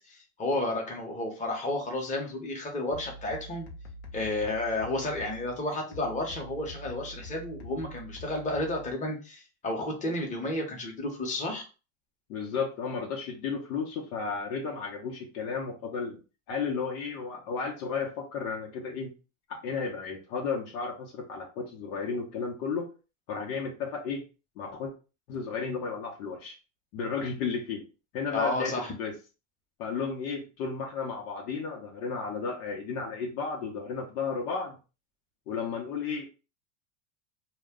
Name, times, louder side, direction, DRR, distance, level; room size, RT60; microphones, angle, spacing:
voice 1, 0.1-3.7 4.1-11.7 28.3-28.9, left 2 dB, 15° left, 0 dB, 0.8 m, -32 dB
sound 1, 2.9-8.9, equal, 60° left, 0.9 m, -45 dB
voice 2, 12.3-16.2 16.5-19.1 19.5-22.9 23.3-24.2 24.6-24.9 25.3-26.5 26.9-27.9 28.1-28.7 29.0-29.1 29.8-34.8 35.5-36.3, left 5 dB, 85° left, 0 dB, 0.9 m, -33 dB
2.3 x 2.1 x 3.5 m, 0.33 s
supercardioid pair, 120°, 44 cm